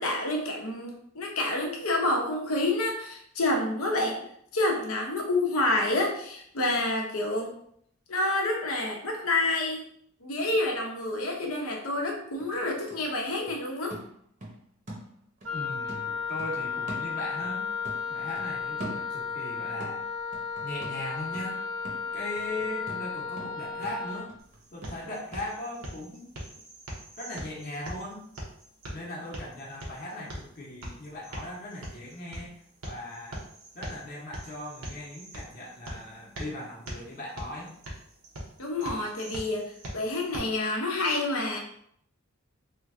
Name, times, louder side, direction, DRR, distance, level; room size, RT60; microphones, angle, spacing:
voice 1, 0.0-4.2 4.5-7.5 8.1-9.8 10.2-14.0 38.6-41.6, left 2 dB, 90° left, 1 dB, 0.8 m, -28 dB
sound 1, 12.4-15.5 15.9-17.6 17.8-19.4 19.8-25.5 25.8-25.9, right 1 dB, 35° right, 0.8 m, -44 dB
Wind instrument woodwind instrument, 15.4-24.3, left 5 dB, 65° right, 0.5 m, -34 dB
voice 2, 15.5-17.7 18.1-20.0 20.6-21.6 22.1-24.3 24.7-26.3 27.2-28.3 28.9-33.4 33.7-37.8, left 1 dB, 40° left, -4 dB, 0.9 m, -39 dB
sound 2, 24.4-40.4, right 1 dB, 85° right, 0.9 m, -43 dB
3.0 x 2.3 x 3.6 m, 0.67 s
head